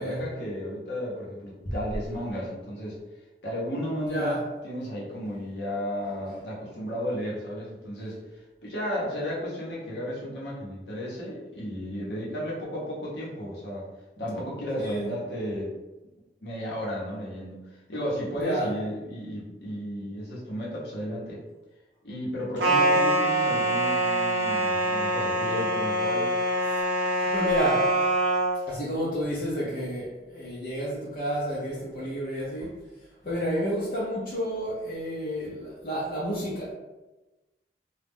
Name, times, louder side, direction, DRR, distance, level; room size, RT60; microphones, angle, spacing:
voice 1, 0.0-3.0 3.4-8.2 8.6-13.9 14.2-15.8 16.4-17.6 17.9-21.4 22.0-26.3, equal, 70° left, -5 dB, 0.9 m, -33 dB
voice 2, 4.1-4.4 14.8-15.1 18.4-18.7 27.3-28.0 28.7-32.7 33.2-36.7, equal, 50° left, -7 dB, 0.6 m, -30 dB
sound 1, 22.6-28.6, right 1 dB, 75° right, 0.6 m, -24 dB
2.3 x 2.0 x 3.4 m, 1.1 s
head